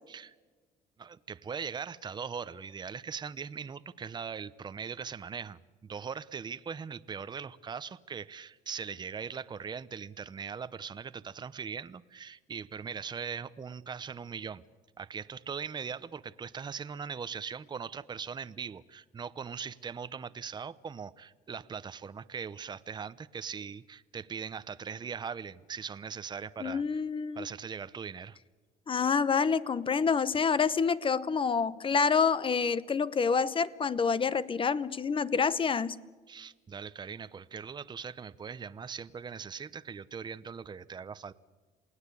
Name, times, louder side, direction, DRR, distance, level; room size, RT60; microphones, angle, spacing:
voice 1, 1.0-14.6 15.0-27.0 27.4-28.4 36.3-41.3, right 6 dB, 25° right, 14 dB, 0.7 m, -40 dB
voice 2, 26.6-27.5 28.9-36.0, left 5 dB, 30° left, 17 dB, 0.9 m, -27 dB
28.0 x 18.0 x 8.4 m, 1.4 s
cardioid pair, 110°, 17 cm